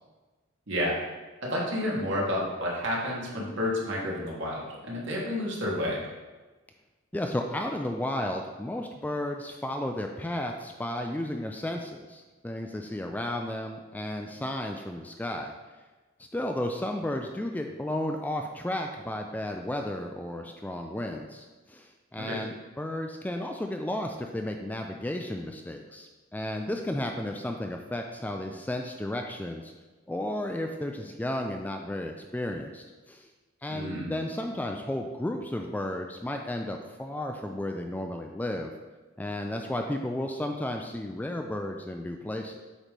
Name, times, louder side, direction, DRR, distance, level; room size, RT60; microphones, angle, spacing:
voice 1, 0.7-1.0 1.4-6.1 22.2-22.4 33.7-34.1, left 1 dB, 60° right, -4 dB, 1.8 m, -30 dB
voice 2, 7.1-15.6 16.3-29.7 30.1-33.3 33.6-38.7 39.2-42.7, left 1 dB, 10° left, 3 dB, 0.3 m, -33 dB
8.2 x 3.1 x 5.1 m, 1.2 s
head